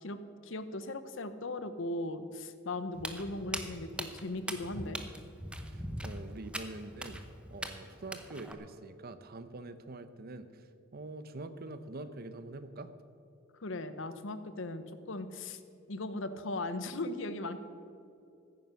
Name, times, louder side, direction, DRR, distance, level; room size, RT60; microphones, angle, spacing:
voice 1, 0.0-5.0 13.6-15.6 15.9-17.6, left 2 dB, 70° left, 11 dB, 0.9 m, -38 dB
Walk footsteps, 2.9-8.5, right 1 dB, 5° right, 0.9 m, -41 dB
voice 2, 6.0-7.2 7.5-10.5 10.9-12.9, right 2 dB, 50° right, 12 dB, 0.8 m, -44 dB
15.0 x 9.3 x 5.8 m, 2.7 s
head